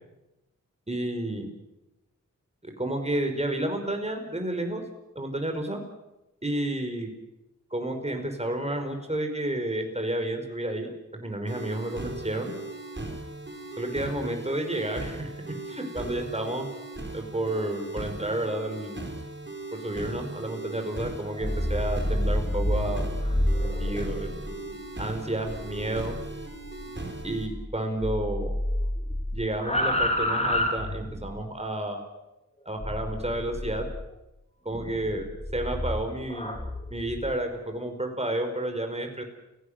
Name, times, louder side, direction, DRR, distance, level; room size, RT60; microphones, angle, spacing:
voice 1, 0.9-1.5 2.6-4.8 5.1-5.8 6.4-7.1 7.7-12.5 13.8-15.3 15.7-16.7 17.1-19.0 19.7-23.1 23.6-24.3 25.0-26.2 27.2-28.5 29.3-32.0 32.6-33.9 34.6-35.3 35.5-36.6 36.9-39.2, right 1 dB, 20° right, 4 dB, 5.1 m, -31 dB
sound 1, 11.5-27.5, right 2 dB, 35° right, 4.7 m, -38 dB
sound 2, 21.3-27.7 28.0-31.4 32.8-34.1 34.7-37.3, left 1 dB, 20° left, 4.0 m, -30 dB
29.5 x 17.5 x 6.7 m, 0.96 s
wide cardioid pair, 50°, 32 cm